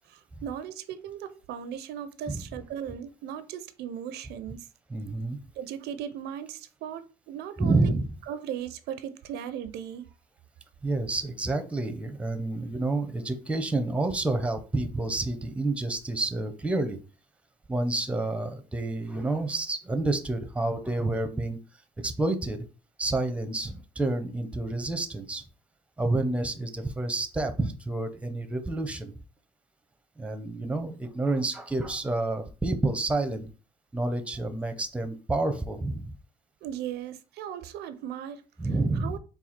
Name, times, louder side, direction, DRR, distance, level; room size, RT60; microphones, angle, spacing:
voice 1, 0.1-4.7 5.6-7.9 8.3-10.1 36.6-38.4 38.9-39.2, right 9 dB, 80° right, 0.4 m, -37 dB
voice 2, 4.9-5.4 7.6-8.1 10.8-17.0 17.7-21.6 22.0-22.6 23.0-25.4 26.0-29.1 30.2-33.5 33.9-36.1 38.6-39.2, right 2 dB, 5° right, 0.5 m, -29 dB
4.1 x 2.3 x 4.3 m
cardioid pair, 110°, 17 cm